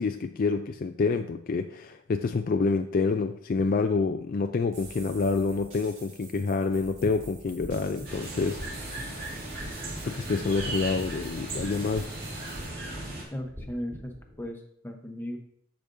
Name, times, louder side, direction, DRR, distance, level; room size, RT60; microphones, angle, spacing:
voice 1, 0.0-8.9 10.0-12.1, left 4 dB, 40° left, 6 dB, 0.3 m, -27 dB
sound 1, 4.7-12.7, right 3 dB, 65° right, 1.8 m, -48 dB
sound 2, 7.8-14.4, equal, 30° right, 2.8 m, -46 dB
sound 3, 8.0-13.2, right 2 dB, 45° right, 2.5 m, -37 dB
voice 2, 13.3-14.1 14.4-15.4, equal, 10° left, 3 dB, 0.8 m, -36 dB
14.0 x 5.1 x 2.6 m, 0.68 s
head